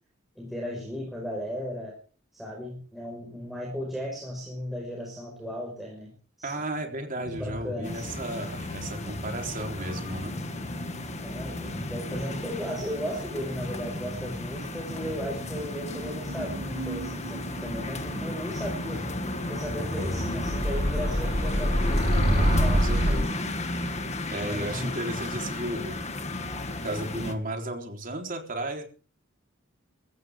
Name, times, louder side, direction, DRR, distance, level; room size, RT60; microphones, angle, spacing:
voice 1, 0.4-2.0 2.3-6.1 6.4-6.5 7.2-8.2 10.4-10.8 11.2-19.0 19.5-23.1 24.5-25.0, equal, ahead, -2 dB, 5.2 m, -36 dB
voice 2, 6.4-10.3 22.4-23.3 24.3-26.0 26.4-28.8, right 1 dB, 40° right, 3 dB, 3.8 m, -34 dB
sound 1, 7.2-14.0 14.3-23.2, equal, 80° right, 4.4 m, -31 dB
sound 2, 7.8-27.3, left 2 dB, 35° left, 1.9 m, -33 dB
24.0 x 15.0 x 3.6 m, 0.40 s
head